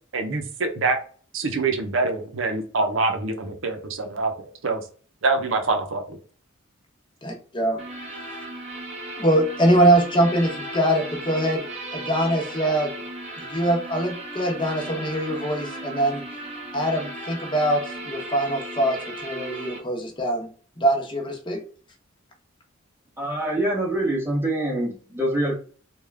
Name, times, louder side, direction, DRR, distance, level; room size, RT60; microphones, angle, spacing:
voice 1, 0.1-1.0 1.3-4.8 5.2-6.2, right 3 dB, 65° right, 6 dB, 0.7 m, -25 dB
voice 2, 7.2-7.8 9.2-11.7 11.9-12.9 13.4-16.2 16.7-20.5 20.8-21.6, right 1 dB, 25° left, 1 dB, 0.9 m, -23 dB
sound 1, 7.8-19.8, right 1 dB, 35° right, 1.1 m, -36 dB
voice 3, 23.2-25.6, right 1 dB, 10° right, -3 dB, 0.8 m, -25 dB
3.5 x 2.4 x 3.3 m, 0.42 s
head